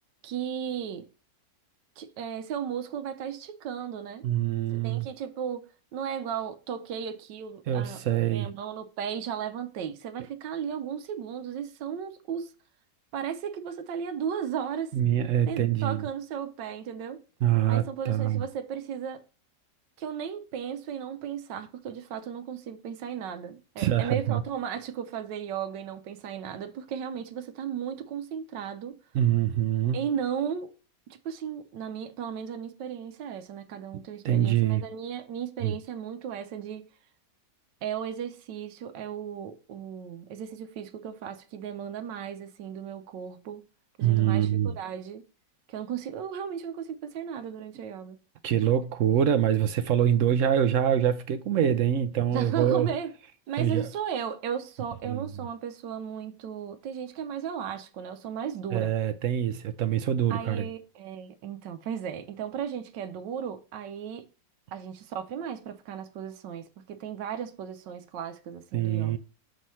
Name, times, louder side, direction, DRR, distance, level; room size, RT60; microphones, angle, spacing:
voice 1, 0.2-1.1 2.0-4.3 4.7-12.5 13.1-15.0 15.5-17.2 17.7-19.2 20.0-29.0 29.9-30.7 31.1-36.9 37.8-43.7 44.0-45.2 45.7-48.2 52.3-53.1 53.5-58.9 60.3-64.3 64.7-69.2, right 8 dB, 90° right, 1.3 m, -35 dB
voice 2, 4.2-5.1 7.7-8.5 14.9-16.0 17.4-18.5 23.8-24.4 29.1-30.0 34.2-34.8 35.6-35.7 44.0-44.7 48.4-52.9 53.6-53.9 55.1-55.2 58.7-60.7 68.7-69.2, right 10 dB, 70° right, 0.7 m, -25 dB
6.4 x 3.1 x 5.5 m
omnidirectional pair, 1.9 m